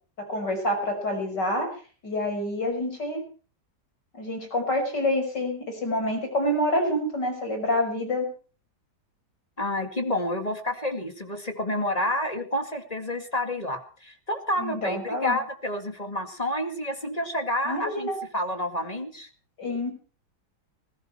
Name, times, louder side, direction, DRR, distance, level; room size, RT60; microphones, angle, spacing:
voice 1, 0.3-1.7 2.0-3.2 4.1-8.3 14.6-15.4 17.6-18.2 19.6-19.9, left 1 dB, 80° left, 4 dB, 6.7 m, -27 dB
voice 2, 9.6-19.3, left 1 dB, 20° left, 7 dB, 2.2 m, -29 dB
20.0 x 16.0 x 4.5 m, 0.39 s
omnidirectional pair, 1.8 m